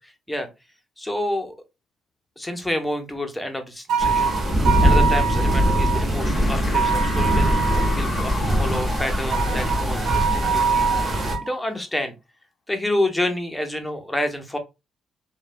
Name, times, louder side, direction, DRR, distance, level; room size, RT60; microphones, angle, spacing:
voice 1, 1.0-1.5 2.4-4.4 4.8-11.1 11.4-12.1 12.7-14.6, left 1 dB, 10° left, 5 dB, 0.7 m, -28 dB
Elevator Sounds - Beeping Sound, 3.9-6.0 6.7-8.0 9.3-11.5, right 6 dB, 80° right, 0.7 m, -24 dB
sound 1, 4.0-11.4, equal, 30° right, 1.0 m, -22 dB
sound 2, 5.6-5.8 6.1-10.7, left 5 dB, 45° left, 0.5 m, -37 dB
3.1 x 2.2 x 2.4 m, 0.24 s
cardioid pair, 90°, 0 cm